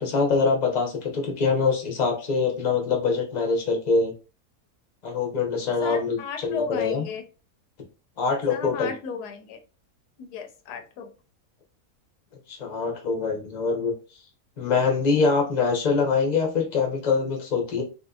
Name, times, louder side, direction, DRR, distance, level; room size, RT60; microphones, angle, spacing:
voice 1, 0.0-4.1 5.0-6.2 6.4-7.1 8.2-8.9 12.5-13.9 14.6-17.8, left 4 dB, 35° left, 1 dB, 0.8 m, -24 dB
voice 2, 5.8-7.2 8.5-9.6 10.2-11.1, left 5 dB, 85° left, 6 dB, 1.2 m, -34 dB
3.5 x 2.7 x 2.3 m, 0.33 s
omnidirectional pair, 1.6 m